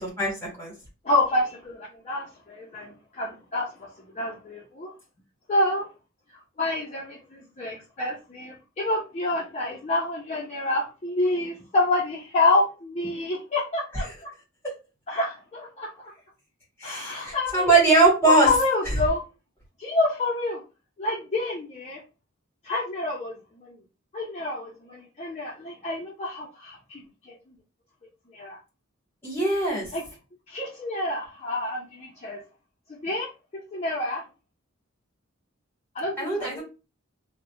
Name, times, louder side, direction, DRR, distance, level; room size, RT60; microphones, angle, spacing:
voice 1, 0.0-0.7 16.8-18.5 29.2-29.9 36.2-36.6, right 3 dB, 10° left, -2 dB, 1.2 m, -21 dB
voice 2, 1.0-3.9 4.1-4.9 5.5-5.9 6.6-14.3 15.1-16.1 16.8-17.7 18.3-19.2 19.8-20.6 21.0-22.0 22.6-23.8 24.1-27.4 28.3-28.6 29.9-30.0 30.5-32.4 33.0-33.3 33.7-34.2 35.9-36.6, left 2 dB, 30° left, -4 dB, 0.5 m, -28 dB
2.3 x 2.0 x 2.8 m, 0.30 s
head